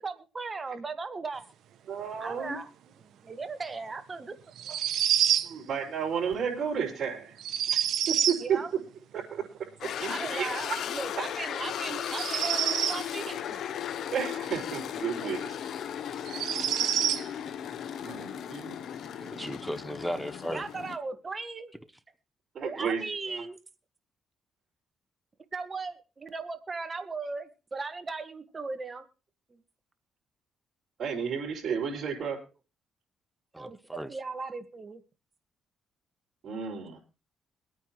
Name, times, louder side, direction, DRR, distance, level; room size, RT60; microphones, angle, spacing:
voice 1, 0.0-1.4 2.2-2.7 3.2-4.3 8.4-8.7 10.1-13.7 20.5-21.7 22.6-23.6 25.5-29.0 29.5-29.6 33.5-35.0, right 4 dB, 30° right, 1.6 m, -37 dB
voice 2, 1.9-2.6 5.5-7.4 7.7-7.8 8.1-8.6 9.1-10.8 14.1-15.6 16.5-16.6 18.0-18.8 22.5-23.0 23.3-23.4 31.0-32.4 36.4-37.0, right 7 dB, 55° right, 5.1 m, -32 dB
sound 1, 4.6-5.5 7.4-8.4 12.0-13.0 15.2-15.3 16.2-17.2, right 10 dB, 75° right, 1.0 m, -27 dB
sound 2, 9.8-21.0, left 9 dB, 70° left, 0.8 m, -36 dB
voice 3, 19.2-20.6 33.5-34.1, equal, 5° right, 0.9 m, -36 dB
23.5 x 9.1 x 3.1 m
cardioid pair, 90°, 0 cm